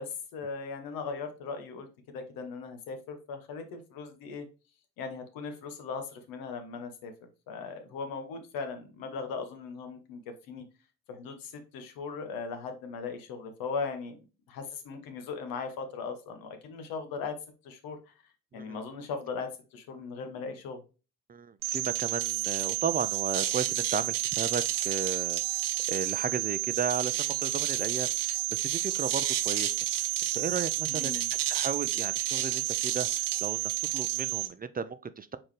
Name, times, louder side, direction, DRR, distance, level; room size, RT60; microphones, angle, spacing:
voice 1, 0.0-1.9 2.1-4.5 5.0-10.2 10.5-10.6 11.1-14.1 14.5-17.4 17.6-18.1 18.5-20.8 30.9-31.3, left 5 dB, 85° left, 1.0 m, -38 dB
voice 2, 21.3-31.1 31.5-35.4, right 6 dB, 25° right, 0.4 m, -35 dB
sound 1, 21.6-34.5, right 13 dB, 70° right, 0.7 m, -30 dB
4.3 x 3.7 x 3.1 m
supercardioid pair, 70°, 34 cm